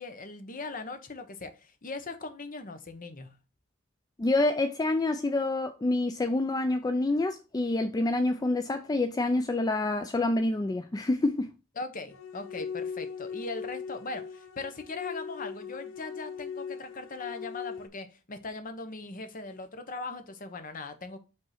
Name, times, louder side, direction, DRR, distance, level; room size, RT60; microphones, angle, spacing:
voice 1, 0.0-3.3 11.8-21.2, left 3 dB, 40° left, 0.9 m, -39 dB
voice 2, 4.2-11.5, left 2 dB, 20° left, 0.3 m, -27 dB
sound 1, 12.1-17.9, left 6 dB, 90° left, 0.6 m, -39 dB
5.4 x 3.7 x 5.6 m
head